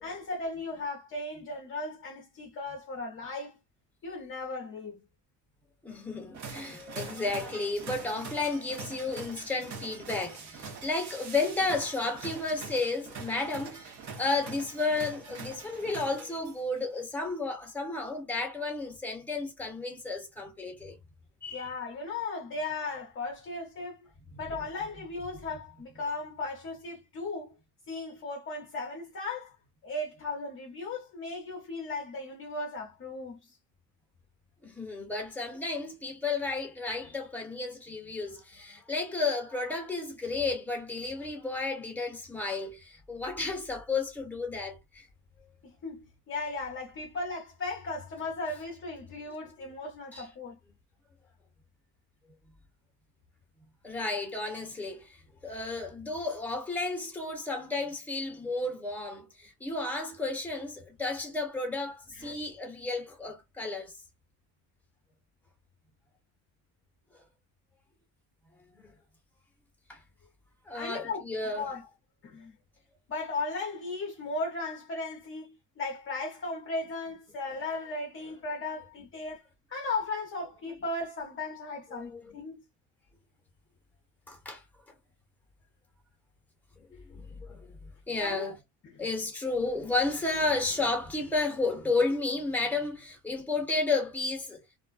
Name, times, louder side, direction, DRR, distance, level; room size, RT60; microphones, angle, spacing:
voice 1, 0.0-3.6 4.0-5.0 21.5-24.1 24.4-27.5 27.9-29.6 29.8-33.6 45.6-50.6 62.1-62.3 70.7-71.9 72.2-72.6 73.1-82.6 88.2-88.5 88.8-89.0, left 3 dB, 30° left, 0.7 m, -36 dB
voice 2, 5.8-21.0 21.4-21.6 34.6-45.1 50.1-50.2 53.8-55.1 55.4-63.9 68.8-68.9 69.9-70.0 70.7-71.7 81.9-82.3 84.3-84.6 86.9-87.8 88.1-88.6 89.0-94.6, left 3 dB, 5° left, 1.0 m, -32 dB
sound 1, 6.3-16.8, right 4 dB, 45° right, 0.9 m, -43 dB
2.5 x 2.1 x 2.3 m
supercardioid pair, 105°, 40 cm